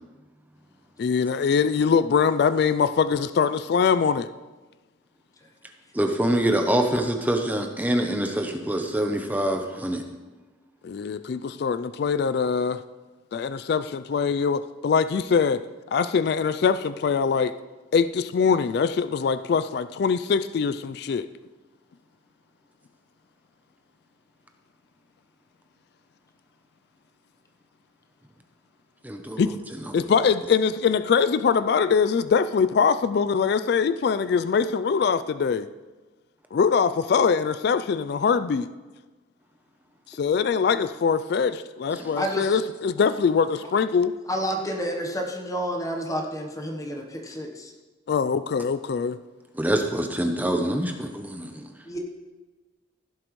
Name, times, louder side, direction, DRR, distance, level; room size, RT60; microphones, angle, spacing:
voice 1, 1.0-4.3 10.8-12.8 13.3-15.6 15.9-17.5 17.9-21.3 29.4-29.5 29.9-35.7 36.5-38.7 40.1-44.1 48.1-49.2, left 6 dB, 55° left, 13 dB, 0.3 m, -23 dB
voice 2, 5.9-10.0 29.0-29.4 49.6-51.6, right 1 dB, 10° right, 4 dB, 0.7 m, -25 dB
voice 3, 42.2-42.6 44.3-47.7 51.8-52.0, equal, 15° left, 1 dB, 1.0 m, -30 dB
16.5 x 7.5 x 3.1 m, 1.2 s
head